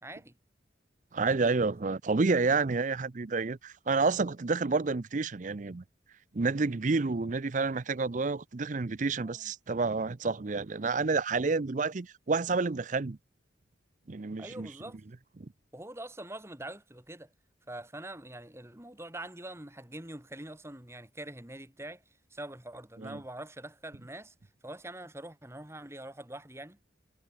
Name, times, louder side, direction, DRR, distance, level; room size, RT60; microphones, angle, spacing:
voice 1, 0.0-0.3 9.2-9.4 14.4-15.0 15.7-17.3 17.7-22.0 22.3-24.3 24.6-26.8, right 1 dB, 15° right, 2.7 m, -44 dB
voice 2, 1.1-5.8 6.3-13.2 14.1-14.7 23.0-23.2, right 4 dB, 45° right, 0.6 m, -29 dB
head